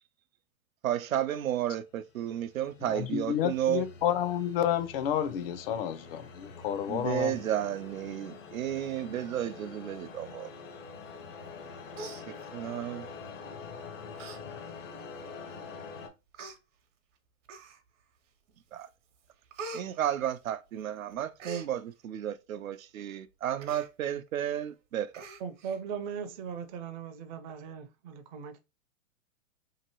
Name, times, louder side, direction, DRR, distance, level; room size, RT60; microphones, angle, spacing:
voice 1, 0.8-3.8 6.9-10.5 12.5-13.1 18.7-18.9 19.7-25.2, right 11 dB, 85° right, 0.5 m, -32 dB
sound 1, 2.0-16.1, left 5 dB, 70° left, 0.9 m, -46 dB
voice 2, 2.9-7.4, left 10 dB, 45° left, 0.5 m, -30 dB
Human voice, 11.5-11.6 11.9-12.8 13.6-13.7 14.1-14.4 14.8-14.9 15.7-15.8 16.3-16.6 17.4-18.0 18.5-18.8 19.1-20.8 21.1-21.7 23.6-23.9 24.3-24.4 24.6-24.8 25.1-25.8 26.1-26.2, right 3 dB, 65° right, 0.9 m, -44 dB
voice 3, 25.4-28.6, right 7 dB, 35° right, 0.5 m, -39 dB
2.9 x 2.6 x 2.8 m
hypercardioid pair, 115°, 40 cm